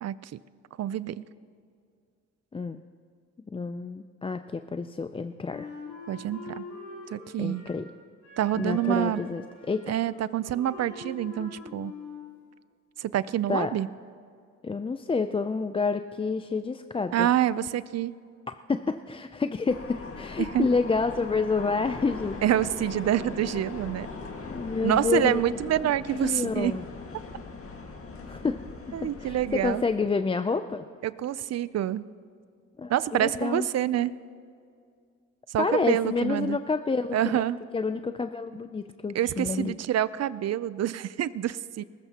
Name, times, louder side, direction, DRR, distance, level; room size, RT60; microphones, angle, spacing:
voice 1, 0.8-1.2 6.1-6.6 7.1-7.6 8.4-9.2 9.9-11.9 13.0-13.9 17.1-18.1 20.4-20.7 22.4-24.1 24.8-26.8 28.9-29.8 31.0-32.0 32.9-34.1 35.5-36.6 37.1-37.6 39.1-41.8, right 11 dB, 60° right, 17 dB, 0.5 m, -27 dB
voice 2, 3.5-5.7 7.4-7.9 8.6-9.9 13.5-13.7 14.6-17.3 18.7-22.4 24.4-25.4 26.1-26.8 28.3-28.6 29.2-30.8 32.8-33.7 35.6-37.4 37.7-39.8, left 4 dB, 20° left, 9 dB, 0.4 m, -29 dB
Wind instrument woodwind instrument, 5.5-7.9 8.2-12.3, left 3 dB, 80° left, 4.1 m, -44 dB
sound 1, 19.7-29.8, left 3 dB, 50° left, 1.8 m, -40 dB
19.0 x 15.5 x 2.9 m, 2.3 s
cardioid pair, 90°, 29 cm